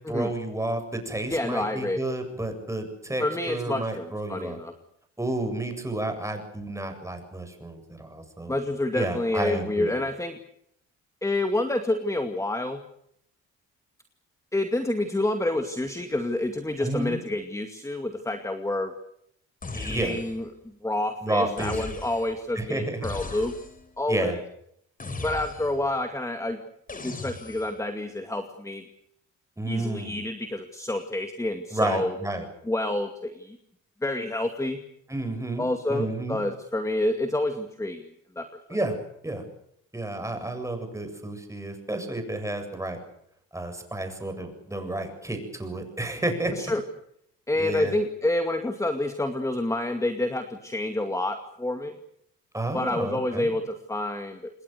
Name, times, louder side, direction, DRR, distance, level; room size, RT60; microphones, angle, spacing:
voice 1, 0.1-4.6 5.2-8.5 8.9-9.9 16.8-17.2 19.9-20.2 21.2-21.9 22.5-23.1 24.1-24.4 29.6-30.2 31.7-32.5 35.1-36.4 38.7-39.0 39.2-39.4 39.9-43.0 43.5-46.5 47.6-47.9 52.5-53.5, right 2 dB, 10° right, 6 dB, 7.6 m, -31 dB
voice 2, 1.3-2.0 3.2-4.7 8.5-10.4 11.2-12.8 14.5-18.9 19.7-20.5 20.8-23.5 24.0-24.4 25.2-26.6 27.0-28.8 29.6-32.2 32.7-33.6 34.0-34.8 35.6-38.1 38.4-38.5 46.5-46.8 47.5-52.0 52.7-54.5, left 1 dB, 10° left, 6 dB, 2.3 m, -28 dB
sound 1, 19.6-20.5 21.6-22.4 23.0-23.9 25.0-25.9 26.9-27.8, left 3 dB, 30° left, 4.2 m, -38 dB
28.0 x 21.5 x 6.7 m, 0.73 s
cardioid pair, 90°, 30 cm